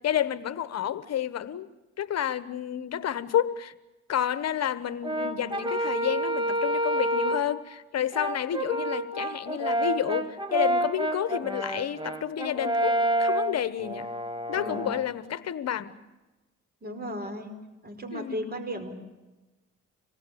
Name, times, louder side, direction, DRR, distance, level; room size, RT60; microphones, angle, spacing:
voice 1, 0.0-1.7 2.0-3.7 4.1-14.1 14.5-15.9 18.1-18.4, left 10 dB, 60° left, 14 dB, 1.2 m, -30 dB
Brass instrument, 5.0-7.5 8.1-15.1, right 1 dB, 15° right, 2.2 m, -29 dB
voice 2, 16.8-17.5 17.8-18.9, equal, 30° right, 6 dB, 5.0 m, -35 dB
26.5 x 20.0 x 8.7 m, 1.1 s
cardioid pair, 90°, 30 cm